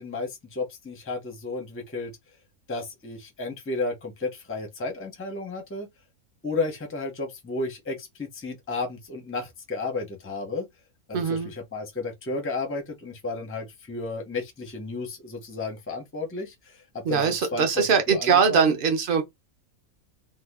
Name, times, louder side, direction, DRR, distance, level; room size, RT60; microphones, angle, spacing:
voice 1, 0.0-2.1 2.7-5.9 6.4-10.7 11.1-18.7, left 3 dB, 15° left, 0.5 m, -33 dB
voice 2, 11.1-11.5 17.0-19.2, right 6 dB, 50° right, 0.7 m, -22 dB
2.7 x 2.2 x 3.4 m
omnidirectional pair, 1.5 m